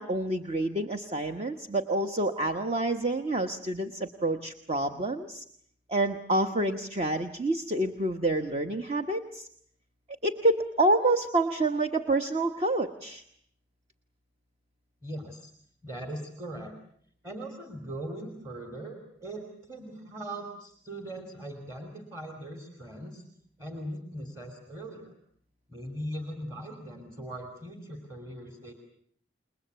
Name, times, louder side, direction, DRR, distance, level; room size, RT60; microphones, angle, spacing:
voice 1, 0.0-5.4 5.9-9.5 10.2-13.2, right 2 dB, 35° right, 7 dB, 1.2 m, -28 dB
voice 2, 15.0-15.5 15.8-16.7 17.2-23.2 23.6-25.1 25.7-28.7, right 1 dB, 15° right, 4 dB, 3.0 m, -40 dB
28.5 x 21.5 x 8.1 m, 0.63 s
head